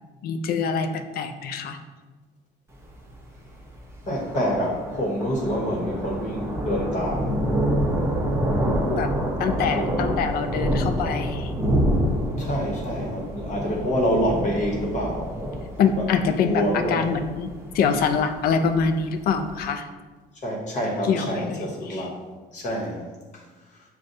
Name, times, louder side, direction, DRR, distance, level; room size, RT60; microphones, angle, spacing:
voice 1, 0.2-1.8 9.0-9.1 9.4-11.5 15.8-19.9 21.1-21.6 21.9-22.1, left 6 dB, 65° left, 8 dB, 0.4 m, -25 dB
Thunder, 2.7-19.6, equal, 15° right, 0.7 m, -27 dB
voice 2, 4.1-7.3 9.7-10.0 12.4-15.3 16.0-16.1 16.4-17.1 20.4-22.1 22.5-23.0, equal, 45° left, -2 dB, 1.0 m, -26 dB
6.4 x 2.2 x 2.6 m, 1.3 s
cardioid pair, 110°, 17 cm